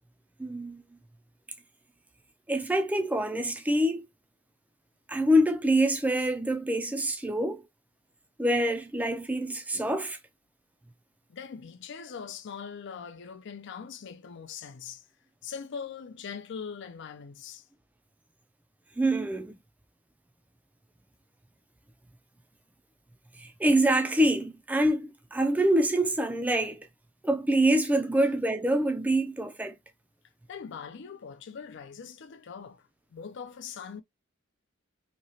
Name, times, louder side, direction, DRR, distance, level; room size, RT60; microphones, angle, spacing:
voice 1, 0.4-0.8 2.5-4.1 5.1-7.6 8.4-10.2 19.0-19.6 23.4-26.9 27.2-29.7, right 1 dB, 10° right, 0.4 m, -25 dB
voice 2, 11.3-15.1 15.4-17.6 30.5-34.0, left 6 dB, 60° left, 0.4 m, -41 dB
3.0 x 2.8 x 2.7 m
head